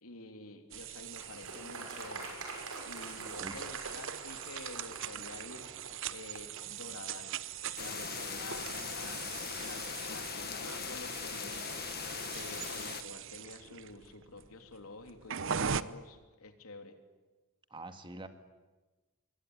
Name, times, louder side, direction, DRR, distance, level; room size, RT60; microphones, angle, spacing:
voice 1, 0.0-2.3 2.8-9.2 9.6-17.0, left 2 dB, 80° left, 6 dB, 3.3 m, -49 dB
washing hand, 0.7-15.8, right 8 dB, 60° right, 0.8 m, -41 dB
Applause, 1.1-6.7, right 3 dB, 85° right, 6.7 m, -45 dB
sound 1, 7.8-13.0, left 7 dB, 45° left, 1.5 m, -40 dB
voice 2, 17.7-18.3, right 2 dB, 20° right, 8 dB, 1.9 m, -45 dB
26.0 x 22.5 x 9.8 m, 1.2 s
head